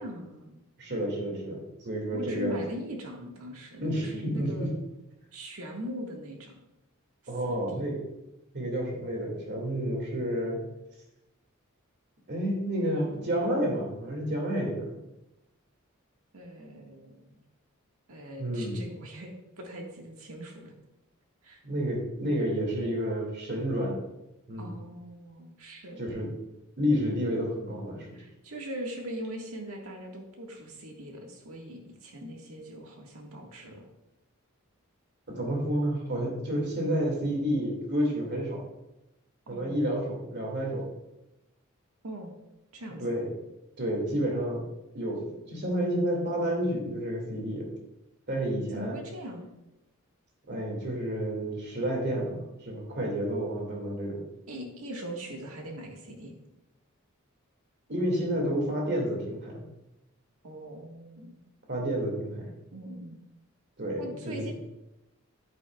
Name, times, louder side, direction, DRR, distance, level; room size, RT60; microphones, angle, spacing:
voice 1, 0.0-0.6 2.1-4.7 5.3-6.6 7.4-7.8 16.3-17.4 18.1-19.3 19.6-20.7 21.4-21.6 24.6-26.0 28.1-33.8 39.5-39.9 42.0-42.3 42.7-43.0 48.7-49.5 54.5-56.3 60.4-61.4 62.7-63.2 64.0-64.5, equal, 85° right, 1 dB, 1.6 m, -41 dB
voice 2, 0.8-2.6 3.8-4.7 7.3-8.0 8.5-10.6 12.3-15.0 18.4-18.8 21.6-24.0 24.5-24.7 26.0-26.3 26.8-28.2 35.3-38.6 39.5-40.9 43.0-43.3 43.8-44.6 44.9-47.7 48.3-49.0 50.5-54.2 57.9-59.6 61.7-62.5 63.8-64.5, equal, 50° right, -1 dB, 2.2 m, -30 dB
9.7 x 8.5 x 2.3 m, 0.92 s
head